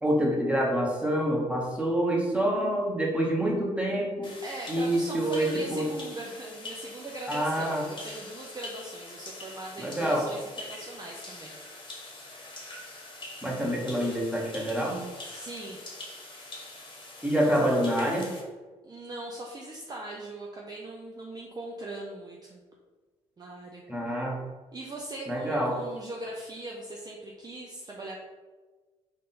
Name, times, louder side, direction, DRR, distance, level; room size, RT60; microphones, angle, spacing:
voice 1, 0.0-4.3 4.7-5.9 7.3-7.8 9.8-10.2 13.4-15.0 17.2-18.3 23.9-24.4 25.3-25.8, right 1 dB, 10° right, -2 dB, 1.3 m, -27 dB
sound 1, 4.2-18.4, left 2 dB, 30° left, 1.2 m, -44 dB
voice 2, 4.4-11.6 15.3-15.8 18.8-22.6 23.4-24.1 24.7-28.2, right 2 dB, 25° right, -2 dB, 0.7 m, -40 dB
3.5 x 2.6 x 4.2 m, 1.3 s
hypercardioid pair, 50°, 15 cm